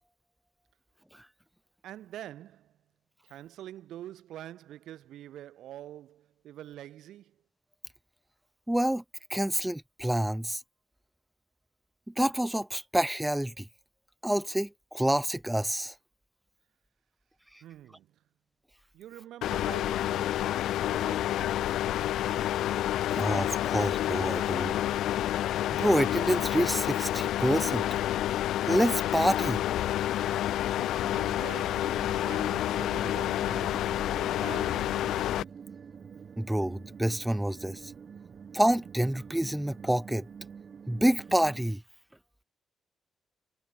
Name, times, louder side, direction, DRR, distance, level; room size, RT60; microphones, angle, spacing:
voice 1, 1.8-2.8 3.2-7.4 17.6-18.2 18.9-22.8 31.2-34.0 34.4-35.1, right 12 dB, 90° right, 1.7 m, -46 dB
voice 2, 8.7-9.0 9.3-10.6 12.1-13.7 14.2-15.9 23.1-24.8 25.8-27.9 28.7-29.6 36.4-37.9 38.5-40.3 40.9-41.8, right 1 dB, 5° right, 0.4 m, -28 dB
sound 1, 19.4-35.4, left 13 dB, 90° left, 0.3 m, -29 dB
sound 2, 30.8-41.7, right 6 dB, 50° right, 5.4 m, -47 dB
cardioid pair, 95°, 0 cm